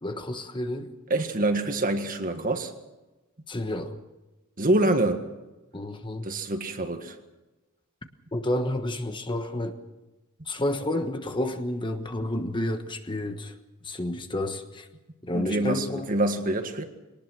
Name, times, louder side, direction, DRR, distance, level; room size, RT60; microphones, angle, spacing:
voice 1, 0.0-0.9 3.5-4.0 5.7-6.3 8.3-9.8 10.4-13.5 13.8-14.9 15.2-16.1, left 1 dB, 20° left, 7 dB, 1.3 m, -30 dB
voice 2, 1.1-2.7 4.6-5.2 6.2-7.2 15.3-16.8, right 2 dB, 40° right, 7 dB, 1.7 m, -26 dB
22.5 x 19.0 x 6.1 m, 1.1 s
head